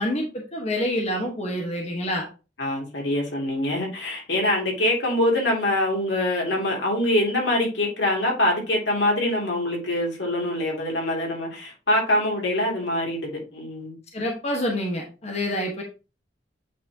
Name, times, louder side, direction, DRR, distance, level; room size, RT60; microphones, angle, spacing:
voice 1, 0.0-2.3 14.1-15.8, left 1 dB, 40° left, 1 dB, 1.2 m, -27 dB
voice 2, 2.6-14.0, left 1 dB, 85° left, -1 dB, 2.6 m, -24 dB
8.4 x 4.2 x 2.8 m, 0.32 s
head